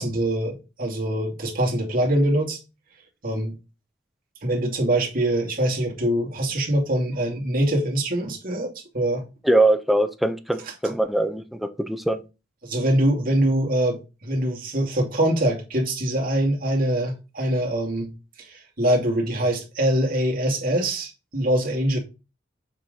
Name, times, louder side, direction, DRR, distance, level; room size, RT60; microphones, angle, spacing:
voice 1, 0.0-2.6 3.2-3.6 4.4-9.2 12.6-18.1 18.4-22.0, right 1 dB, 50° right, 2.6 m, -23 dB
voice 2, 9.4-12.2, right 1 dB, ahead, 0.7 m, -22 dB
7.2 x 4.8 x 3.9 m
head